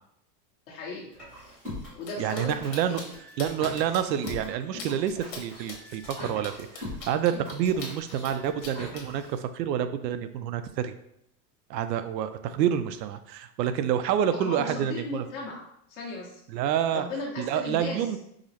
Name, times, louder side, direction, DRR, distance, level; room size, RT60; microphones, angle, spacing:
voice 1, 0.7-1.1 1.9-2.6 2.9-3.1 14.4-15.6 15.9-16.4 16.9-18.0, left 2 dB, 55° left, -3 dB, 1.3 m, -36 dB
sound 1, 1.1-9.3, left 1 dB, ahead, 0.4 m, -42 dB
sound 2, 2.0-2.1 2.3-2.4 2.7-3.0 3.4-4.0 4.3-4.4 4.8-4.9 5.3-5.4 5.7-8.3 8.6-9.0, left 4 dB, 85° left, 1.3 m, -41 dB
voice 2, 2.2-3.1 3.4-10.9 11.7-15.2 16.5-17.1 17.4-18.2, right 9 dB, 90° right, 10 dB, 0.6 m, -28 dB
4.9 x 2.0 x 2.9 m, 0.75 s
supercardioid pair, 175°, 48 cm